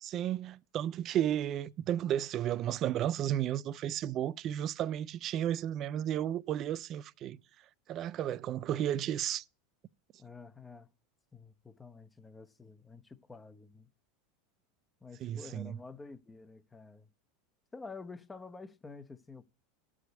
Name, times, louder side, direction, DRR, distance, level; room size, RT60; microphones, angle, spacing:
voice 1, 0.0-7.4 7.9-9.4 15.2-15.8, right 11 dB, 45° right, 0.4 m, -33 dB
voice 2, 10.2-10.9 11.3-13.9 15.0-17.1 17.7-19.4, left 4 dB, 15° left, 0.8 m, -49 dB
12.5 x 4.9 x 8.1 m
hypercardioid pair, 95°, 0 cm